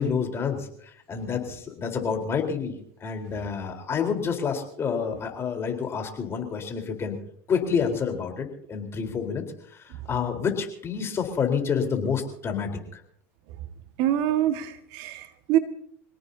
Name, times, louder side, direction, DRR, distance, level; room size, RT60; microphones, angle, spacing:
voice 1, 0.0-7.2 7.5-9.4 9.7-13.0, left 6 dB, 35° left, 3 dB, 4.1 m, -28 dB
voice 2, 14.0-15.6, right 12 dB, 65° right, 8 dB, 1.8 m, -25 dB
26.5 x 18.0 x 2.8 m, 0.65 s
hypercardioid pair, 90°, 8 cm